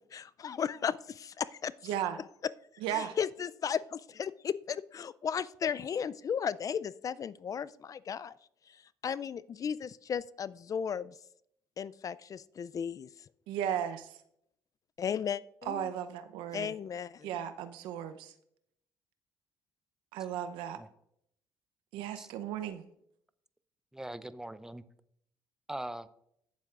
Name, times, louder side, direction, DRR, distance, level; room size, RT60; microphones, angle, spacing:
voice 1, 0.1-1.7 2.9-8.3 8.7-11.1 11.8-13.1 15.0-15.9 16.5-17.4, left 7 dB, 45° left, 17 dB, 0.4 m, -35 dB
voice 2, 1.8-2.2 2.8-3.2 13.5-14.2 15.6-16.7 17.2-18.3 20.1-20.8 21.9-22.8, right 10 dB, 80° right, 10 dB, 0.7 m, -35 dB
voice 3, 23.9-24.8 25.7-26.1, right 1 dB, 5° right, 14 dB, 0.6 m, -41 dB
17.0 x 7.4 x 2.5 m, 0.73 s
supercardioid pair, 65°, 8 cm